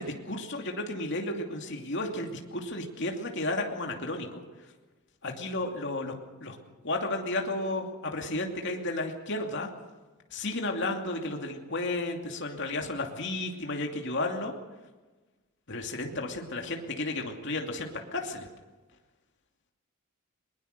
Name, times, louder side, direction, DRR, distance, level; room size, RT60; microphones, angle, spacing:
voice 1, 0.0-4.4 5.2-6.1 6.4-6.6 6.8-9.7 10.3-14.5 15.7-18.5, left 2 dB, 55° left, 2 dB, 2.7 m, -33 dB
21.5 x 21.0 x 6.7 m, 1.2 s
head